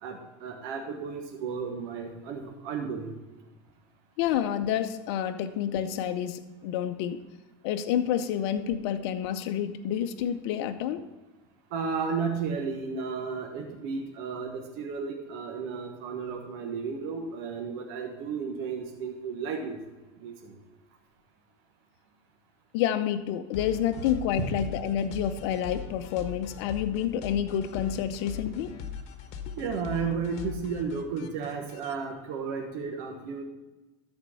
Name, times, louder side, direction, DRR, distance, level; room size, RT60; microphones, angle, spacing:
voice 1, 0.0-3.1 11.7-19.8 20.2-20.5 29.6-33.4, right 5 dB, 70° right, 3 dB, 1.3 m, -33 dB
voice 2, 4.2-7.2 7.6-11.0 22.7-28.7, left 9 dB, 70° left, 7 dB, 0.7 m, -29 dB
sound 1, 23.5-31.9, left 7 dB, 55° left, 1.3 m, -40 dB
13.0 x 4.4 x 5.6 m, 1.1 s
supercardioid pair, 105°, 14 cm